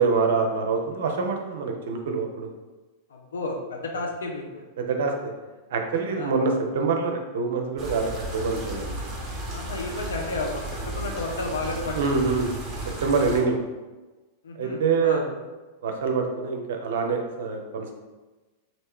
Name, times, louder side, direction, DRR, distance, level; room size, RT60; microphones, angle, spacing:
voice 1, 0.0-2.5 4.8-5.3 5.7-9.1 11.9-12.5 13.0-13.6 14.6-15.3 15.8-17.9, right 4 dB, 60° right, 3 dB, 0.5 m, -25 dB
voice 2, 3.1-4.6 6.1-6.3 9.5-12.2 13.2-13.4 14.4-15.3, left 3 dB, 70° left, 1 dB, 0.6 m, -32 dB
sound 1, 7.8-13.4, right 1 dB, 25° right, 1.1 m, -34 dB
3.2 x 2.5 x 3.5 m, 1.2 s
figure-of-eight pair, 95°, 0 cm